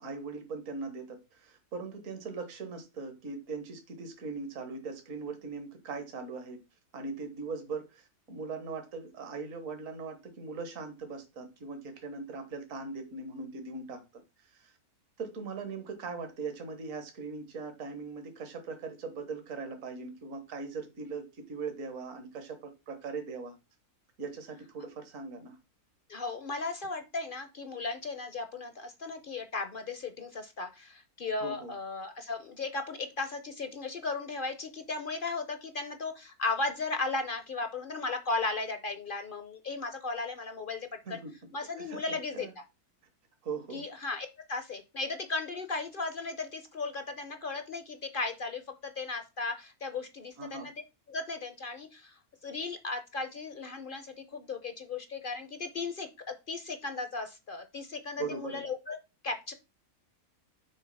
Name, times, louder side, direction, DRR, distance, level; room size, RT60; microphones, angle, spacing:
voice 1, 0.0-6.6 6.9-14.0 14.4-14.7 15.2-23.5 24.2-25.6 31.4-31.7 41.1-41.3 41.8-42.5 43.4-43.8 50.4-50.7 58.2-58.7, right 4 dB, 60° right, 6 dB, 1.7 m, -40 dB
voice 2, 26.1-41.2 41.5-42.5 43.7-50.7 51.1-59.0 59.2-59.5, left 3 dB, 45° left, 8 dB, 0.7 m, -36 dB
6.3 x 3.9 x 5.4 m, 0.26 s
omnidirectional pair, 1.6 m